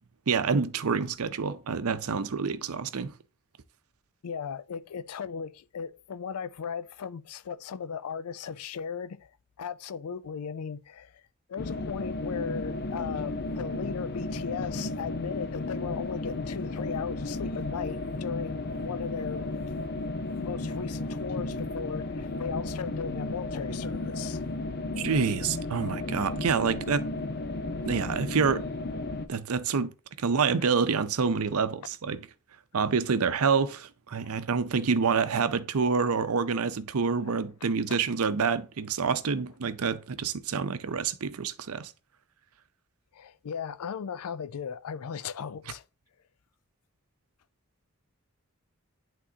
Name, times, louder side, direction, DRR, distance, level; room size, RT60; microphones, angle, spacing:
voice 1, 0.3-3.1 25.0-27.0 27.9-28.7 29.3-29.9 30.2-32.3 32.7-41.9, right 5 dB, 80° right, 0.6 m, -27 dB
voice 2, 4.2-9.3 9.6-11.2 11.5-19.5 20.0-24.4 37.2-37.3 43.1-45.8, left 6 dB, 85° left, 0.4 m, -37 dB
sound 1, 11.6-29.3, left 2 dB, 45° left, 0.6 m, -34 dB
11.0 x 3.7 x 2.8 m
head